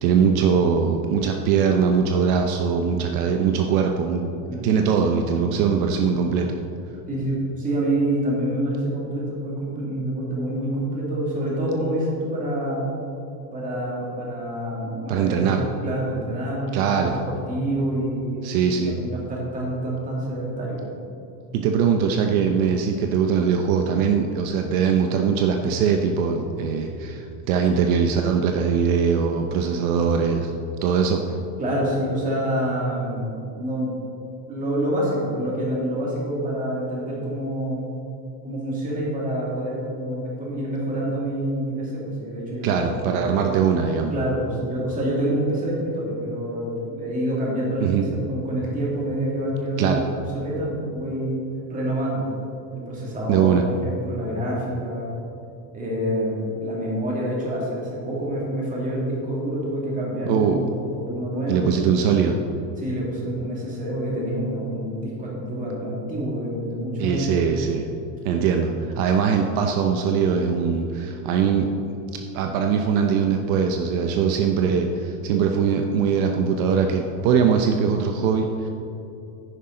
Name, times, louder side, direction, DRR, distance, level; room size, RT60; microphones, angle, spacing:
voice 1, 0.0-4.2 4.6-6.6 15.1-15.6 16.7-17.2 18.4-19.0 21.5-30.5 30.8-31.2 42.6-44.1 47.8-48.1 49.8-50.0 53.3-53.7 60.3-60.6 61.5-62.4 67.0-67.8 68.2-71.7 72.3-78.7, right 6 dB, 65° right, 4 dB, 0.8 m, -21 dB
voice 2, 7.1-12.8 13.5-15.5 15.8-20.8 31.6-33.9 34.5-38.0 38.4-43.0 44.1-50.0 50.3-51.4 51.7-52.3 52.7-55.1 55.7-61.7 62.8-67.4, right 1 dB, 15° right, -5 dB, 2.3 m, -27 dB
10.0 x 10.0 x 3.8 m, 2.7 s
cardioid pair, 175°, 46 cm